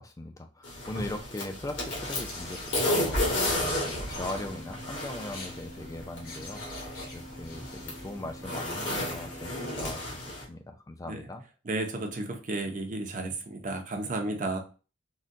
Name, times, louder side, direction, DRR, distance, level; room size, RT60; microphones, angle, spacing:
voice 1, 0.0-11.4, left 2 dB, 15° left, 5 dB, 0.3 m, -40 dB
sound 1, 0.6-10.4, left 1 dB, 60° left, 1.3 m, -33 dB
sound 2, 1.8-8.6, left 2 dB, 45° left, 1.0 m, -47 dB
Organ, 4.1-10.6, equal, 85° right, 1.0 m, -49 dB
voice 2, 11.7-14.6, right 2 dB, 40° right, 4 dB, 0.5 m, -33 dB
3.7 x 2.2 x 2.5 m, 0.35 s
head